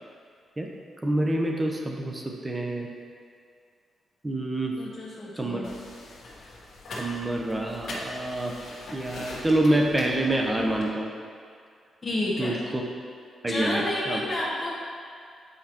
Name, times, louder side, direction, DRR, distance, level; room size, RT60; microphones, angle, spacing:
voice 1, 1.0-2.9 4.2-4.8 5.4-5.7 7.0-8.5 8.9-11.1 12.4-12.8 13.4-14.2, right 1 dB, 20° right, 1 dB, 0.9 m, -27 dB
voice 2, 4.8-5.7 12.0-12.6 13.5-14.7, left 1 dB, 30° left, -7 dB, 1.4 m, -30 dB
sound 1, 5.6-10.9, left 2 dB, 70° left, 1.5 m, -41 dB
8.2 x 4.9 x 3.0 m, 2.3 s
cardioid pair, 80°, 0 cm